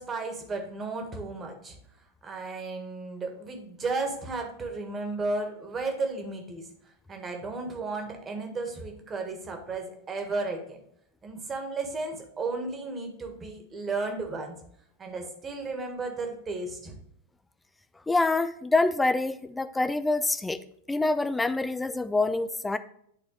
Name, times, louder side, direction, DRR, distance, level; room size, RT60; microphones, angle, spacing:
voice 1, 0.0-1.8 2.2-10.8 11.2-14.6 15.0-17.0, right 3 dB, 20° right, 4 dB, 1.5 m, -34 dB
voice 2, 18.1-20.6 20.9-22.8, left 2 dB, 10° left, 12 dB, 0.4 m, -26 dB
9.9 x 4.2 x 3.2 m, 0.69 s
figure-of-eight pair, 90°, 0 cm